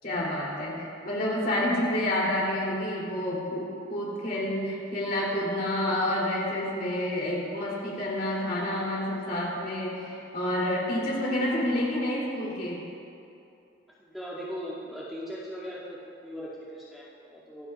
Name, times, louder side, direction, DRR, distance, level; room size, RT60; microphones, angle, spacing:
voice 1, 0.0-12.8, left 1 dB, 50° left, -5 dB, 3.2 m, -29 dB
voice 2, 14.0-16.0 16.2-17.7, equal, ahead, -11 dB, 2.4 m, -39 dB
25.5 x 9.5 x 2.5 m, 2.7 s
head